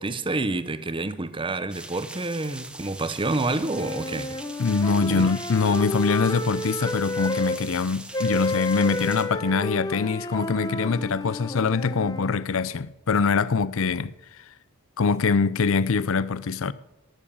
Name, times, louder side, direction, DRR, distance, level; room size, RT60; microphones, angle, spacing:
voice 1, 0.0-4.4 5.1-5.3, right 2 dB, 25° right, 0.8 m, -28 dB
sound 1, 1.7-9.3, right 2 dB, 5° right, 1.1 m, -42 dB
sound 2, 3.5-7.6 8.1-12.4, left 1 dB, 15° left, 0.8 m, -31 dB
voice 2, 4.6-14.1 15.0-16.7, left 5 dB, 65° left, 0.5 m, -23 dB
18.0 x 7.2 x 8.6 m
head